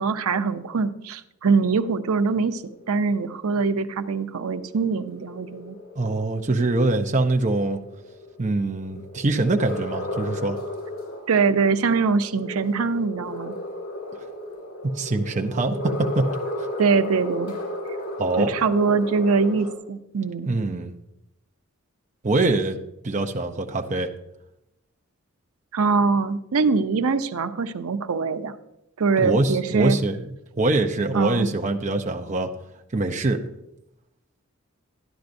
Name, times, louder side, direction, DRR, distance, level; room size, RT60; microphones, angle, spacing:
voice 1, 0.0-5.8 11.3-13.6 16.8-17.6 18.4-20.6 25.7-28.6 29.0-30.0 31.1-31.5, right 4 dB, 80° right, 10 dB, 0.6 m, -23 dB
sound 1, 2.4-19.7, left 1 dB, 85° left, 2.5 m, -35 dB
voice 2, 6.0-7.8 8.4-10.6 14.8-16.3 18.2-18.5 20.5-20.9 22.2-22.8 23.0-24.1 29.2-30.2 30.6-32.5 32.9-33.4, right 2 dB, 35° right, 4 dB, 0.5 m, -23 dB
13.0 x 10.5 x 2.6 m, 0.87 s
head